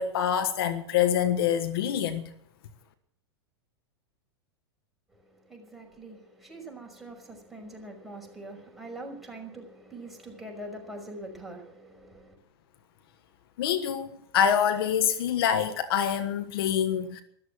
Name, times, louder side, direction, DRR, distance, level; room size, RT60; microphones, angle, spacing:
voice 1, 0.0-2.3 13.6-14.1 14.3-17.2, left 9 dB, 60° left, 1.4 m, -25 dB
voice 2, 5.1-12.4, right 1 dB, ahead, 5.7 m, -43 dB
14.0 x 12.5 x 7.7 m
hypercardioid pair, 100°, 14 cm